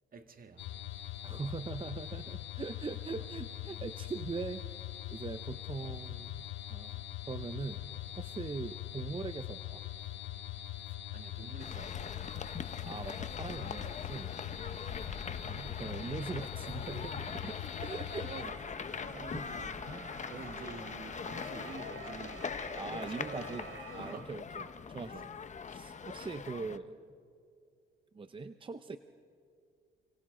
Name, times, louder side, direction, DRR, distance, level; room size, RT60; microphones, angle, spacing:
voice 1, 0.1-0.7 3.1-3.3 3.7-3.8 5.8-6.0 10.9-12.4 14.9-15.3 18.3-22.5 22.9-23.5 23.8-24.3 25.2-25.3, right 4 dB, 45° right, 1.8 m, -50 dB
sound 1, 0.6-18.4, left 13 dB, 75° left, 0.8 m, -42 dB
voice 2, 1.2-4.6 5.1-7.8 8.2-9.8 12.8-14.3 15.4-18.5 19.1-19.5 22.8-25.3 25.6-27.0 28.1-29.0, right 4 dB, 25° right, 0.7 m, -41 dB
sound 2, 9.6-9.7 10.0-24.1, right 4 dB, 70° right, 3.2 m, -53 dB
sound 3, 11.6-26.8, left 6 dB, 35° left, 1.0 m, -42 dB
29.0 x 25.5 x 3.9 m
cardioid pair, 90°, 20 cm